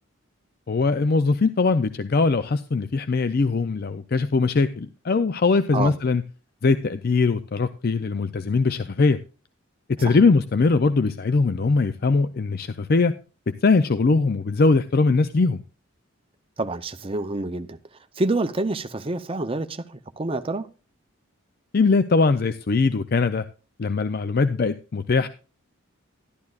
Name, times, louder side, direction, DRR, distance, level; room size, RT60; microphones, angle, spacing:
voice 1, 0.7-6.2 6.6-9.2 9.9-13.1 13.6-15.6 21.7-23.5 23.8-25.3, left 4 dB, 45° left, 0.4 m, -21 dB
voice 2, 16.6-17.8 18.2-20.7, right 2 dB, 25° right, 0.6 m, -27 dB
12.0 x 11.5 x 2.4 m
head